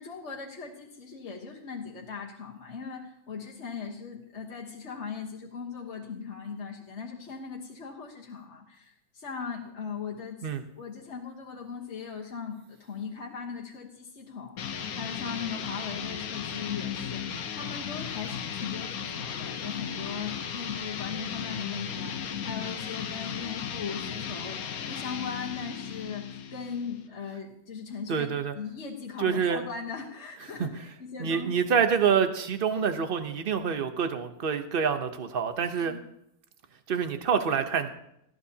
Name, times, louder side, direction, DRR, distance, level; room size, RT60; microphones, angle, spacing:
voice 1, 0.0-10.5 10.8-28.3 28.5-31.5 35.8-36.0, left 6 dB, 50° left, -2 dB, 1.5 m, -39 dB
sound 1, 14.6-27.1, left 7 dB, 70° left, 1.3 m, -36 dB
voice 2, 28.1-28.5 29.2-29.6 30.6-30.7 31.2-35.9 36.9-37.9, right 7 dB, 45° right, 9 dB, 0.9 m, -26 dB
18.5 x 14.0 x 2.8 m, 0.77 s
omnidirectional pair, 1.6 m